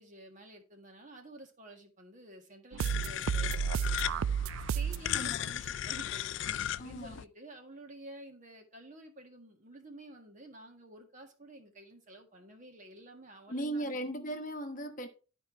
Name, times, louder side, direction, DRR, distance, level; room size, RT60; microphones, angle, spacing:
voice 1, 0.0-4.1 4.7-14.1, right 1 dB, 40° right, 1.8 m, -51 dB
sound 1, 2.7-5.1, right 7 dB, 85° right, 0.3 m, -31 dB
sound 2, 2.8-7.2, left 11 dB, 60° left, 0.3 m, -36 dB
voice 2, 5.1-5.4 6.8-7.2 13.5-15.1, right 1 dB, 40° left, 1.0 m, -37 dB
12.0 x 4.5 x 4.4 m
head